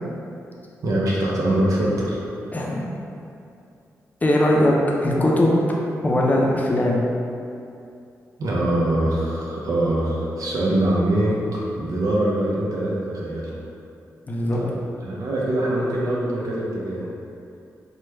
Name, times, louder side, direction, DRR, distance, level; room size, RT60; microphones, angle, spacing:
voice 1, 0.8-2.2 8.4-13.5 14.5-14.7 15.0-17.1, right 1 dB, 70° right, -5 dB, 0.6 m, -23 dB
voice 2, 2.5-2.8 4.2-5.8 6.0-7.0 14.3-14.6, left 1 dB, 25° left, -2 dB, 0.5 m, -20 dB
3.0 x 2.2 x 3.3 m, 2.6 s
cardioid pair, 80°, 6 cm